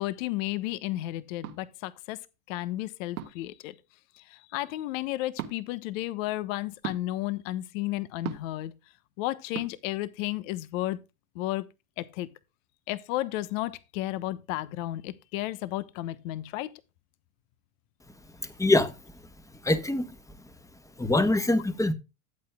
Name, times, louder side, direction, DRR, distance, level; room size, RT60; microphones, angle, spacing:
voice 1, 0.0-2.2 2.5-3.7 4.2-8.7 9.2-11.0 11.3-11.6 12.0-12.3 12.9-16.7, left 16 dB, 65° left, 1.2 m, -33 dB
sound 1, 1.4-1.6 3.2-3.5 5.3-5.6 6.8-7.0 8.2-8.6 9.5-9.7, right 11 dB, 80° right, 1.8 m, -36 dB
voice 2, 18.6-18.9 19.6-20.1 21.0-21.9, left 2 dB, 5° left, 1.3 m, -23 dB
14.0 x 8.5 x 2.2 m
hypercardioid pair, 100°, 42 cm